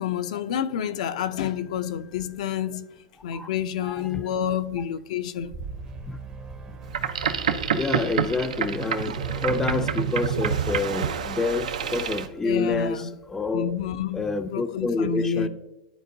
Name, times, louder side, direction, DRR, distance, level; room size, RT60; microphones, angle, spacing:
voice 1, 0.0-2.9 3.2-5.5 12.4-13.1 13.5-15.5, left 9 dB, 70° left, 0.5 m, -29 dB
sound 1, 1.7-2.7 3.0-8.2, right 3 dB, 45° right, 1.0 m, -44 dB
voice 2, 3.8-4.2 6.1-6.2 6.7-6.8 7.7-13.7 14.1-15.5, left 3 dB, 10° left, 0.4 m, -28 dB
sound 2, 5.6-8.6, right 5 dB, 25° right, 0.7 m, -43 dB
Boat Water vehicle, 6.8-12.3, right 7 dB, 85° right, 0.6 m, -27 dB
12.0 x 4.4 x 2.6 m
hypercardioid pair, 125°, 4 cm